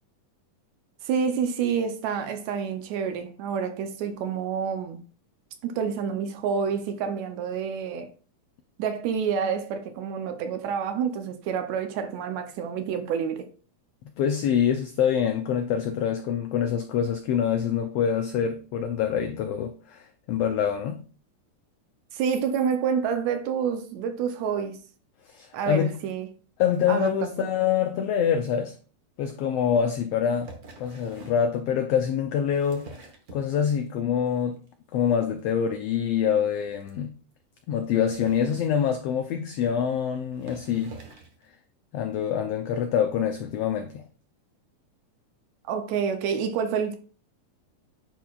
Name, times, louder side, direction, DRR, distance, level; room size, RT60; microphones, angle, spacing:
voice 1, 1.0-5.0 5.6-8.1 8.8-13.5 22.1-24.8 25.5-26.3 26.9-27.5 45.7-47.0, right 7 dB, 75° right, 1.9 m, -28 dB
voice 2, 14.2-21.0 25.2-26.0 26.6-28.7 29.2-30.5 30.8-32.9 33.3-34.6 34.9-37.1 37.7-41.0 41.9-44.0, left 8 dB, 90° left, 1.4 m, -25 dB
sound 1, 30.4-31.5 32.3-33.9 34.3-34.7 35.0-35.1 35.4-35.5 35.7-35.8 36.1-36.2 36.8-36.9 37.8-39.2 39.9-40.0 40.3-41.4 42.2-42.3, right 2 dB, 60° right, 1.0 m, -47 dB
10.0 x 4.5 x 2.4 m
omnidirectional pair, 3.5 m